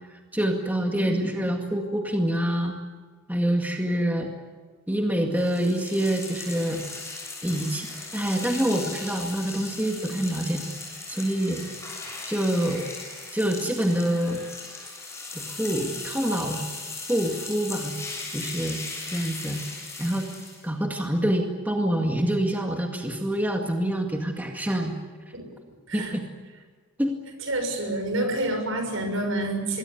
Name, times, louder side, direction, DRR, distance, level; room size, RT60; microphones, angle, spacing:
voice 1, 0.1-2.7 3.3-4.3 4.9-6.8 7.4-7.9 8.1-10.6 11.1-11.6 12.3-12.8 13.3-14.4 15.3-16.7 17.1-17.9 18.3-18.8 19.1-19.6 20.0-20.3 20.6-24.9 25.9-26.2 27.0-27.2, right 1 dB, 10° right, 2 dB, 2.1 m, -26 dB
voice 2, 0.9-1.2 25.3-25.4 25.9-26.2 27.4-29.8, right 1 dB, 65° right, 6 dB, 6.4 m, -28 dB
sound 1, 5.4-20.7, left 3 dB, 15° left, 7.3 m, -38 dB
26.5 x 21.5 x 8.4 m, 1.5 s
head